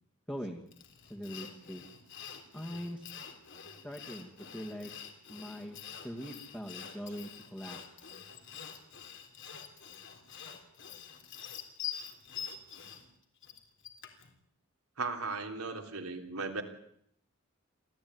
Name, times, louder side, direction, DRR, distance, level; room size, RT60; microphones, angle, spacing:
voice 1, 0.3-0.6 1.0-1.8 2.5-3.0 3.8-4.9 5.3-7.8 8.5-8.6, equal, 10° left, 1 dB, 2.1 m, -42 dB
Sawing, 0.7-14.3, left 8 dB, 55° left, 3.7 m, -46 dB
voice 2, 15.0-16.6, right 4 dB, 90° right, 3 dB, 3.4 m, -36 dB
26.5 x 15.5 x 9.6 m, 0.71 s
head